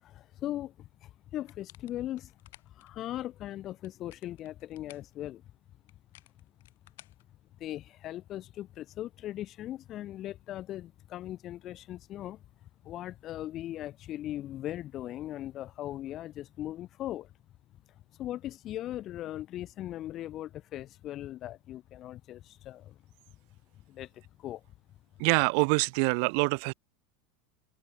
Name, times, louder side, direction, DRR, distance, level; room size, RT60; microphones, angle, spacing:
voice 1, 0.0-2.3 2.6-5.4 7.6-12.4 12.8-17.3 18.2-23.0 23.9-24.6, left 13 dB, 30° left, 0.5 m, -39 dB
sound 1, 1.5-2.9 3.7-5.2 5.9-7.9, left 17 dB, 70° left, 6.3 m, -58 dB
voice 2, 25.2-26.7, right 36 dB, 50° right, 0.7 m, -25 dB
open air
supercardioid pair, 165°, 0 cm